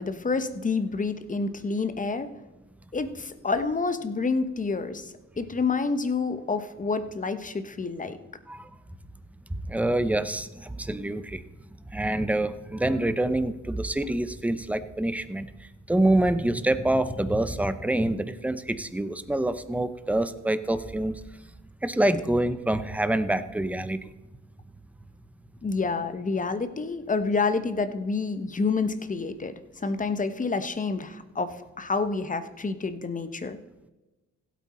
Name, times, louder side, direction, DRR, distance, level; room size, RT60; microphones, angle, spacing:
voice 1, 0.0-2.3 2.9-8.2 25.6-33.6, left 4 dB, 25° left, 11 dB, 1.0 m, -28 dB
voice 2, 9.5-11.4 11.9-21.2 21.8-24.1, right 1 dB, 5° right, 12 dB, 0.7 m, -26 dB
15.5 x 8.5 x 4.3 m, 1.1 s
cardioid pair, 90°, 30 cm